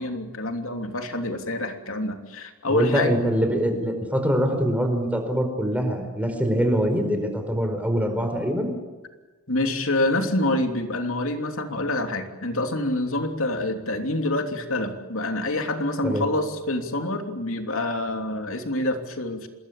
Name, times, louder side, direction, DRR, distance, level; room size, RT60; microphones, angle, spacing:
voice 1, 0.0-3.1 9.5-19.5, left 1 dB, 65° left, 5 dB, 3.2 m, -26 dB
voice 2, 2.7-8.7 16.0-16.3, equal, 5° right, 5 dB, 4.6 m, -24 dB
27.5 x 21.0 x 8.5 m, 1.2 s
head